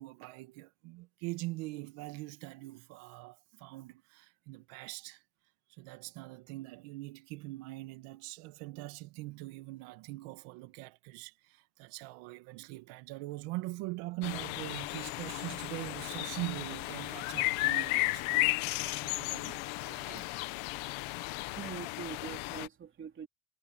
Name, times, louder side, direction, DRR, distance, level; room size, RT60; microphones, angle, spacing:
voice 1, 0.0-5.2 5.7-18.5 18.8-20.2, right 20 dB, 85° right, 1.8 m, -43 dB
sound 1, 14.2-22.7, left 20 dB, 70° left, 1.3 m, -34 dB
voice 2, 21.5-23.3, right 7 dB, 25° right, 3.1 m, -43 dB
cardioid pair, 180°, 48 cm